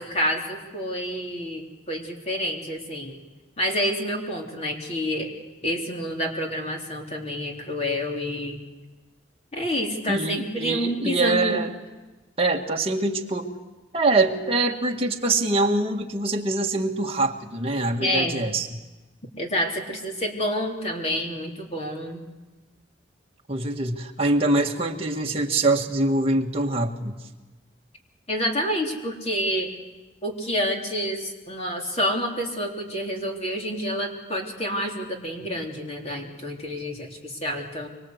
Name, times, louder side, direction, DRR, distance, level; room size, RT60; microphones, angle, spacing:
voice 1, 0.0-3.2 3.6-5.3 5.6-8.6 9.5-11.6 18.0-18.4 19.4-22.2 28.3-29.7 30.2-37.9, equal, 35° left, 1 dB, 3.5 m, -28 dB
voice 2, 10.1-11.7 12.4-13.5 13.9-18.7 23.5-27.2, right 2 dB, 30° right, 1 dB, 1.8 m, -24 dB
24.5 x 24.0 x 8.1 m, 1.2 s
head